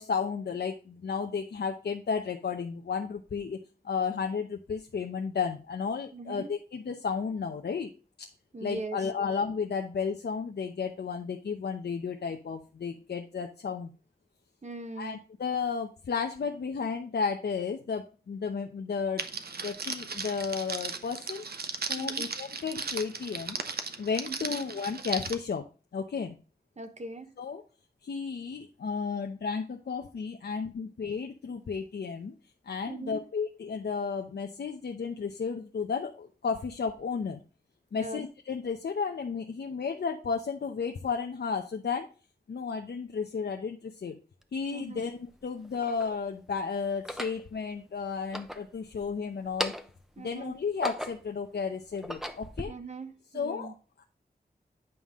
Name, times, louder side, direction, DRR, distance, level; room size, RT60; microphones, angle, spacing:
voice 1, 0.0-7.9 8.2-8.3 8.6-13.9 15.0-19.2 19.6-21.4 21.9-23.6 24.0-25.6 25.9-26.3 27.4-27.6 28.0-32.3 32.6-37.4 37.9-42.1 42.5-44.2 44.5-49.7 50.2-52.7 53.3-54.0, left 5 dB, 90° left, 0.8 m, -33 dB
voice 2, 6.1-6.5 8.5-9.0 14.6-15.2 22.0-22.3 24.3-24.6 26.8-27.3 32.9-33.2 37.9-38.2 44.7-45.1 50.2-50.6 52.7-53.7, right 3 dB, 45° right, 1.2 m, -40 dB
Crackle, 19.2-25.3, right 5 dB, 70° right, 1.0 m, -36 dB
sound 1, 44.4-44.5 45.3-46.2 46.9-47.4 48.2-49.1 49.4-50.0 50.5-51.4 51.9-52.7, equal, ahead, 0.8 m, -37 dB
9.3 x 5.5 x 3.6 m
wide cardioid pair, 95°, 17 cm